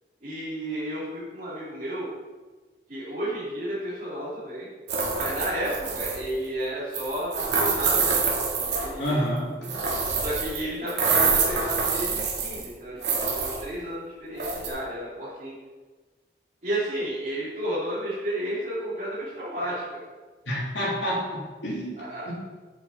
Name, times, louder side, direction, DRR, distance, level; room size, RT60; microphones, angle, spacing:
voice 1, 0.2-2.1 2.9-4.7 5.1-8.2 8.8-9.2 10.2-15.5 16.6-20.0 22.0-22.3, right 1 dB, 45° right, -11 dB, 3.3 m, -32 dB
sound 1, 4.9-6.3 6.9-9.1 9.6-10.6 10.9-12.7 13.0-13.6 14.4-14.7, right 4 dB, 75° right, 2.4 m, -26 dB
voice 2, 9.0-9.5 20.5-21.9 22.3-22.4, equal, 85° left, -5 dB, 3.4 m, -28 dB
9.0 x 7.7 x 4.4 m, 1.3 s
head